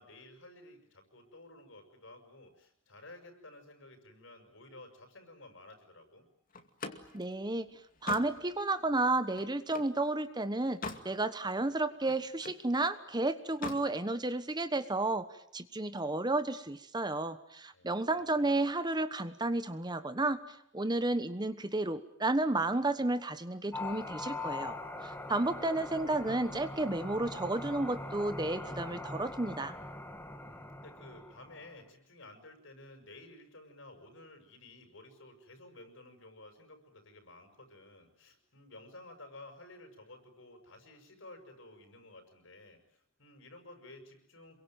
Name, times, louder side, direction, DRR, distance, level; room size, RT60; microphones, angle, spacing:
voice 1, 0.0-6.3 17.7-18.7 30.4-44.6, left 2 dB, 70° left, 7 dB, 6.7 m, -54 dB
Slam, 6.5-10.0 10.4-11.1 11.5-12.7 13.4-13.9, left 3 dB, 45° left, 2.3 m, -43 dB
voice 2, 7.1-7.7 8.0-10.8 11.0-15.3 15.5-20.4 20.7-24.7 25.0-29.7, right 2 dB, 20° right, 11 dB, 1.2 m, -32 dB
sound 1, 23.7-31.7, left 2 dB, 10° left, 2.1 m, -42 dB
28.0 x 23.0 x 9.2 m, 0.70 s
head